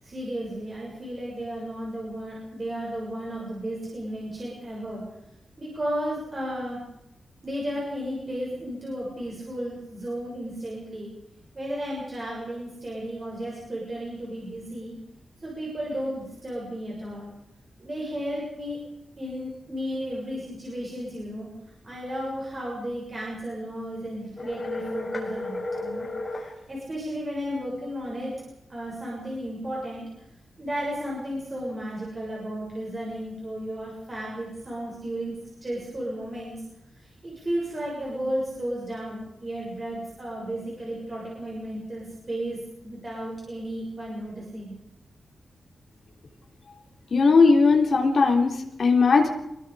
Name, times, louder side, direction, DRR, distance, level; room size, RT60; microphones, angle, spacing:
voice 1, 0.0-5.0 5.6-6.8 7.4-11.1 11.5-15.0 15.4-17.3 17.8-18.8 19.2-21.5 21.8-26.1 26.7-28.4 28.7-30.0 30.6-35.3 35.6-36.6 36.9-44.7, equal, 25° right, -4 dB, 6.8 m, -33 dB
Outgoing Call, 24.4-26.5, left 2 dB, 25° left, 6.5 m, -32 dB
voice 2, 47.1-49.3, left 4 dB, 50° left, 2 dB, 3.8 m, -18 dB
27.5 x 21.5 x 5.1 m, 0.85 s
wide cardioid pair, 175°, 0 cm